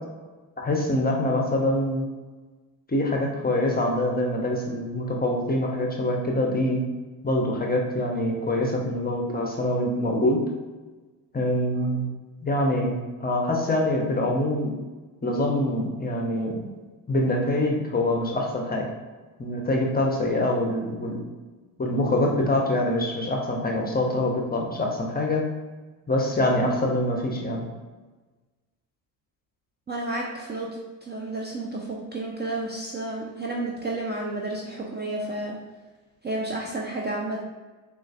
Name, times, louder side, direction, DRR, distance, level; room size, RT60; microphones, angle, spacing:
voice 1, 0.6-2.0 2.9-6.8 7.2-10.4 11.3-12.0 12.4-14.7 15.2-16.7 17.1-18.9 19.4-21.2 21.8-25.4 26.1-27.6, left 1 dB, 20° left, 0 dB, 0.7 m, -25 dB
voice 2, 29.9-35.6 36.2-37.4, right 2 dB, 20° right, -2 dB, 0.5 m, -31 dB
3.8 x 2.5 x 2.4 m, 1.3 s
hypercardioid pair, 60°, 49 cm